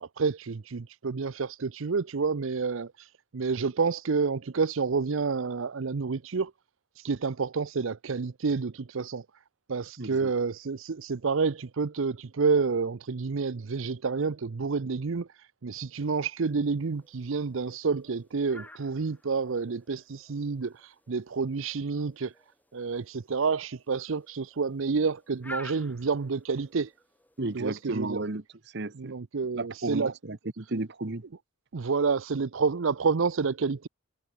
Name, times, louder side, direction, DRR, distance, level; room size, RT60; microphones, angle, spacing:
voice 1, 0.0-6.5 7.0-9.2 9.7-22.3 22.7-26.9 27.5-28.2 29.0-30.1 31.7-33.9, right 4 dB, 70° right, 0.6 m, -29 dB
voice 2, 10.0-10.3 27.4-29.1 29.5-31.2, right 2 dB, 55° right, 1.1 m, -34 dB
sound 1, 16.0-27.8, left 1 dB, 10° left, 6.8 m, -51 dB
head